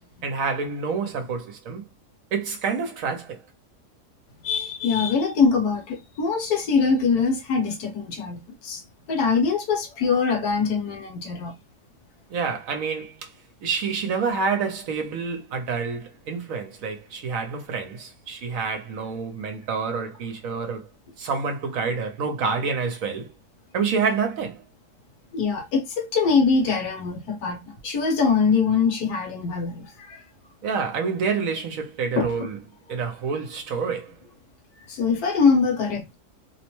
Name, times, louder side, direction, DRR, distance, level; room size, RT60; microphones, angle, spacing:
voice 1, 0.2-1.8 2.3-3.4 12.3-13.3 13.6-20.9 21.2-23.3 23.7-24.6 30.6-32.6 32.9-34.1, right 5 dB, 65° right, 0.9 m, -28 dB
voice 2, 4.4-8.8 9.1-11.5 25.3-27.6 27.8-30.2 32.2-32.3 34.9-36.2, left 5 dB, 70° left, 1.3 m, -23 dB
2.9 x 2.0 x 2.9 m
omnidirectional pair, 1.7 m